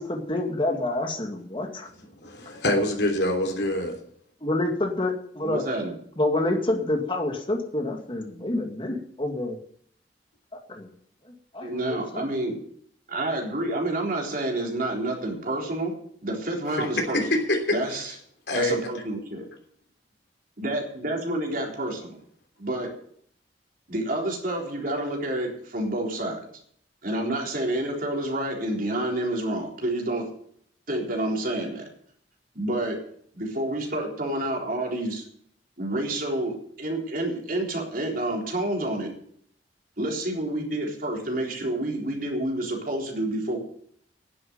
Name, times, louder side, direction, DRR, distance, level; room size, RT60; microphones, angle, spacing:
voice 1, 0.0-1.9 4.4-5.6 6.2-9.6 10.7-10.9 11.5-12.2, left 1 dB, 30° left, 3 dB, 2.2 m, -28 dB
voice 2, 2.2-3.9 16.8-17.8 18.5-18.8, left 1 dB, 75° left, 3 dB, 3.2 m, -25 dB
voice 3, 5.4-5.9 11.6-12.5 13.1-16.0 16.2-17.2 17.7-18.1 18.5-19.5 20.6-22.2 22.6-22.9 23.9-26.4 27.0-30.3 30.9-31.8 32.5-33.0 33.3-35.2 35.8-39.1 40.0-43.6, right 1 dB, 50° right, 0 dB, 3.9 m, -29 dB
10.5 x 8.0 x 9.4 m, 0.64 s
head